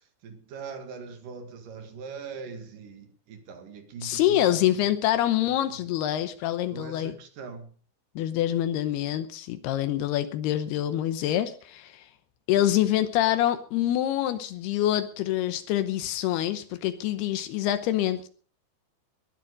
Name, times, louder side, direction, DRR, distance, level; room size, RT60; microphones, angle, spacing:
voice 1, 0.0-4.6 6.7-7.7, right 5 dB, 60° right, 3.4 m, -41 dB
voice 2, 4.0-7.1 8.2-12.1 12.5-18.3, left 12 dB, 80° left, 2.9 m, -26 dB
20.0 x 10.5 x 5.3 m
omnidirectional pair, 4.5 m